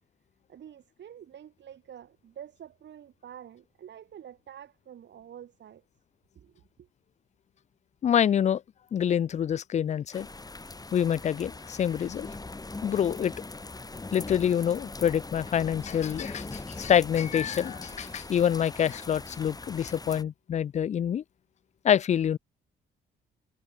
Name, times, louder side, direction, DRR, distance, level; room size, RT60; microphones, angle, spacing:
voice 1, 0.5-5.8 6.4-6.9, right 9 dB, 65° right, 5.6 m, -48 dB
voice 2, 8.0-8.6 8.9-10.3 10.9-12.3 12.8-13.3 14.1-21.2 21.8-22.4, left 9 dB, 35° left, 0.4 m, -26 dB
sound 1, 10.1-20.2, left 3 dB, 20° left, 3.6 m, -41 dB
cardioid pair, 90°, 20 cm